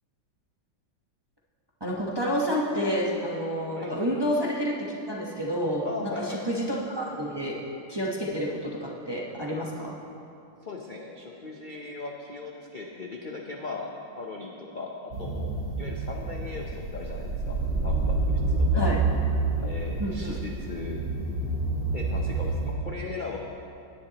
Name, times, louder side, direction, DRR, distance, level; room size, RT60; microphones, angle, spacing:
voice 1, 1.8-7.6 7.9-10.0 18.7-19.0 20.0-20.4, equal, 20° right, -4 dB, 0.8 m, -29 dB
voice 2, 5.8-6.4 10.6-13.9 14.2-14.9 15.2-17.6 17.8-18.4 18.7-18.9 19.6-21.0 21.9-23.4, left 4 dB, 65° left, -1 dB, 0.5 m, -38 dB
sound 1, 15.1-22.7, right 3 dB, 70° right, 2.0 m, -28 dB
17.0 x 9.8 x 2.9 m, 2.6 s
omnidirectional pair, 2.0 m